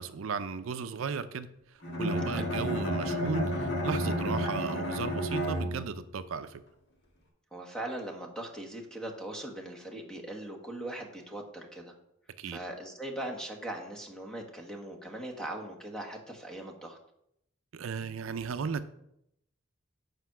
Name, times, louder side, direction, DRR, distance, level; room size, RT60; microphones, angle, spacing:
voice 1, 0.0-6.6 12.4-12.6 17.7-18.9, right 5 dB, 75° right, 12 dB, 0.5 m, -35 dB
Bowed string instrument, 1.8-6.1, equal, 55° left, 1.8 m, -31 dB
voice 2, 7.5-11.9 12.4-17.0, right 1 dB, 5° left, 1 dB, 1.3 m, -40 dB
8.0 x 5.2 x 5.8 m, 0.78 s
head